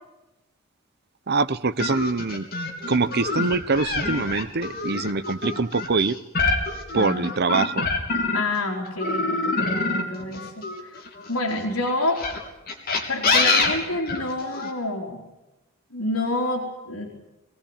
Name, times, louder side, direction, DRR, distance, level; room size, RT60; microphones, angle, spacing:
voice 1, 1.3-2.5 2.8-6.2 6.9-7.9, right 4 dB, 50° right, 13 dB, 0.8 m, -24 dB
sound 1, 1.8-8.6 9.0-11.4 12.1-14.7, left 3 dB, 45° left, 3.5 m, -25 dB
voice 2, 6.9-7.3 8.3-11.0 11.3-12.2 13.1-15.2 15.9-17.2, left 2 dB, 80° left, -5 dB, 4.0 m, -28 dB
22.0 x 18.5 x 8.8 m, 0.99 s
head